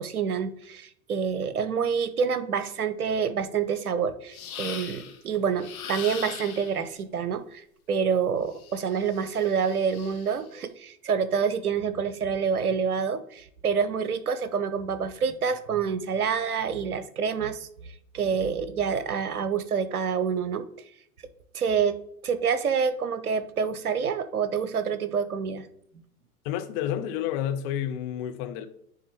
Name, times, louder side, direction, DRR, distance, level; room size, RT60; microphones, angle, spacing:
voice 1, 0.0-17.7 18.1-20.6 21.5-22.0 22.2-25.7, right 6 dB, 80° right, 0.7 m, -27 dB
sound 1, 4.3-5.2 5.6-6.8 8.5-10.4, left 8 dB, 70° left, 0.9 m, -40 dB
voice 2, 26.4-28.7, left 10 dB, 25° left, 0.4 m, -30 dB
10.0 x 3.5 x 3.1 m
figure-of-eight pair, 90°, 44 cm